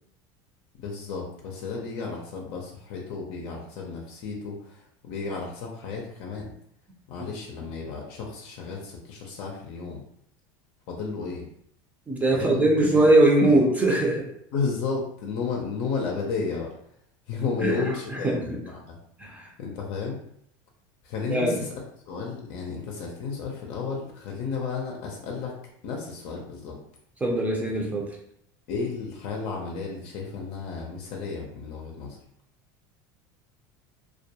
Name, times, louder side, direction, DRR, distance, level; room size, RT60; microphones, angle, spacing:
voice 1, 0.8-6.5 7.1-10.0 10.9-11.4 12.3-13.1 13.5-13.6 14.5-16.7 17.3-19.0 19.6-20.2 21.0-21.7 22.0-26.8 28.7-32.2, left 4 dB, 60° left, 0 dB, 0.6 m, -33 dB
voice 2, 12.1-14.3 17.6-17.8 18.2-18.6 19.2-19.5 21.3-21.6 27.2-28.2, right 2 dB, 15° right, -1 dB, 0.5 m, -21 dB
2.3 x 2.2 x 2.8 m, 0.69 s
supercardioid pair, 120°, 11 cm